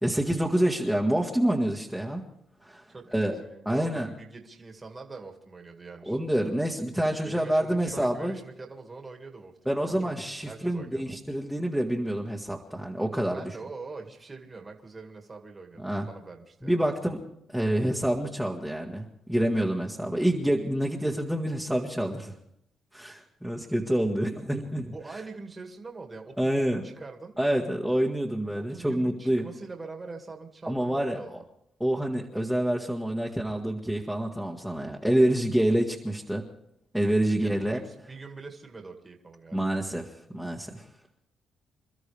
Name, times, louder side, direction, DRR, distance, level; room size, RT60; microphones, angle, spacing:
voice 1, 0.0-2.2 2.6-2.8 3.1-3.3 3.6-4.1 6.0-8.4 9.6-13.4 15.8-16.1 16.6-17.2 17.5-22.3 22.9-25.2 26.4-26.9 27.4-29.5 30.7-31.4 31.8-36.4 36.9-37.8 39.5-40.8, right 1 dB, ahead, -2 dB, 1.7 m, -27 dB
voice 2, 2.9-6.2 7.2-10.0 10.5-11.1 13.3-16.8 24.9-27.3 28.5-31.4 37.3-39.7, right 3 dB, 25° right, 2 dB, 2.2 m, -43 dB
28.0 x 13.0 x 3.5 m, 0.75 s
cardioid pair, 90°, 0 cm